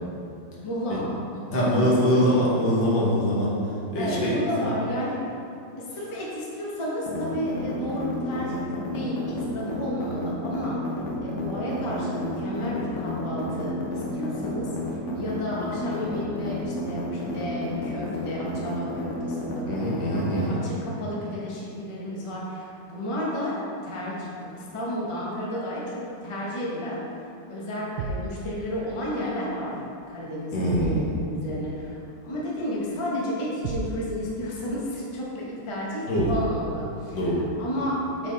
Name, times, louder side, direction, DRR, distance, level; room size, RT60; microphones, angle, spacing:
voice 1, 0.6-2.4 3.9-5.2 5.8-10.9 11.2-27.1 27.5-29.7 30.1-37.2 37.6-38.3, equal, 20° left, -5 dB, 0.9 m, -32 dB
voice 2, 1.5-3.5 3.9-4.7 19.7-20.6 30.5-31.1 36.1-36.3 37.1-37.4, equal, 85° left, -6 dB, 2.1 m, -23 dB
sound 1, 7.0-20.5, left 1 dB, 50° left, 1.0 m, -31 dB
sound 2, 28.0-28.3 30.7-31.1 33.6-34.0 36.2-36.6, right 4 dB, 80° right, 1.2 m, -31 dB
6.8 x 4.6 x 4.1 m, 2.7 s
omnidirectional pair, 2.0 m